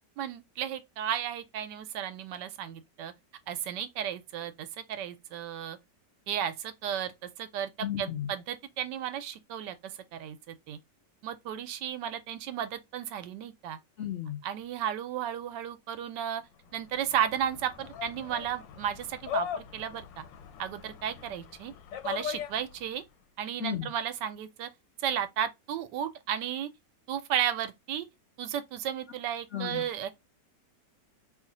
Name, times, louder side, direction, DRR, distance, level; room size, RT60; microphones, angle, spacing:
voice 1, 0.2-3.1 3.5-5.8 6.3-7.7 8.0-10.8 11.2-13.8 14.4-16.4 16.7-20.2 20.6-21.7 22.0-23.0 23.4-24.7 25.0-26.7 27.1-28.1 28.4-30.1, right 9 dB, 75° right, 1.2 m, -34 dB
voice 2, 7.8-8.3 14.0-14.4 23.6-23.9 29.5-29.8, left 9 dB, 65° left, 0.7 m, -34 dB
sound 1, 16.6-23.0, left 8 dB, 85° left, 1.3 m, -40 dB
3.0 x 2.4 x 3.8 m
omnidirectional pair, 1.9 m